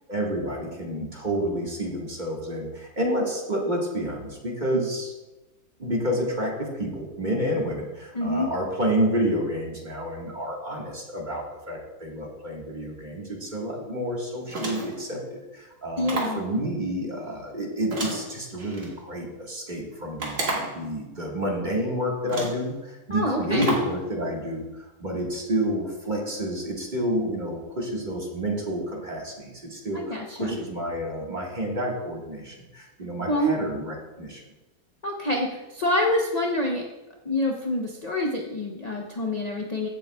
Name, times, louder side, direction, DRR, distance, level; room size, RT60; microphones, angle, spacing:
voice 1, 0.1-5.1 5.8-15.2 15.5-24.6 25.0-34.4, equal, 30° right, -2 dB, 1.7 m, -29 dB
voice 2, 8.1-8.5 16.0-16.4 23.1-23.7 29.9-30.6 33.3-33.6 35.0-36.9 37.2-39.9, left 1 dB, 35° left, 0 dB, 0.6 m, -26 dB
sound 1, 14.5-15.1 16.0-16.4 17.9-18.9 20.2-20.8 21.7-21.8 22.3-22.7 23.6-24.0, right 2 dB, 50° right, 2.1 m, -31 dB
15.0 x 7.0 x 2.3 m, 1.1 s
omnidirectional pair, 1.7 m